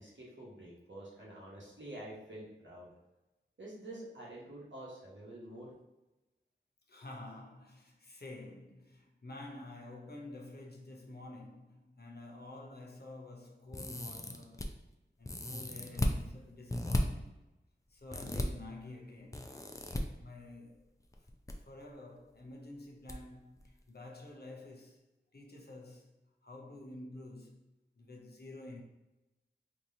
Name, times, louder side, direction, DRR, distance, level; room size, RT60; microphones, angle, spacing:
voice 1, 0.0-2.9 3.6-5.7, right 1 dB, 85° right, 1.1 m, -48 dB
voice 2, 6.9-14.7 15.2-17.4 17.9-19.5 20.2-20.8 21.7-25.0 25.3-26.1 26.4-27.6 28.0-28.8, left 2 dB, 60° left, 0.7 m, -49 dB
sound 1, 13.7-14.7 15.2-16.2 16.7-17.0 18.1-18.5 19.3-20.0 21.1-21.5 21.8-21.9 23.1-23.2 23.6-23.7, left 1 dB, 15° left, 0.4 m, -35 dB
3.7 x 2.9 x 2.6 m
wide cardioid pair, 50°, 19 cm